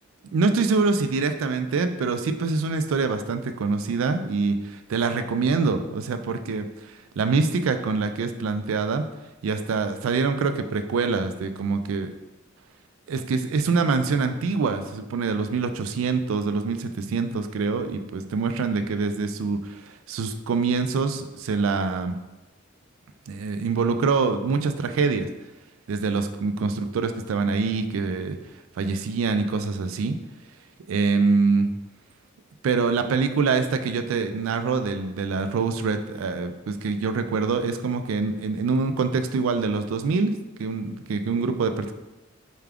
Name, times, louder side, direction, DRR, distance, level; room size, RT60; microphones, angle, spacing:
voice 1, 0.3-9.0 9.4-12.1 13.1-22.2 23.3-25.3 25.9-28.4 28.8-30.2 30.9-31.7 32.6-40.3 40.6-41.9, right 4 dB, 90° right, 8 dB, 0.3 m, -25 dB
4.7 x 2.3 x 3.4 m, 1.1 s
head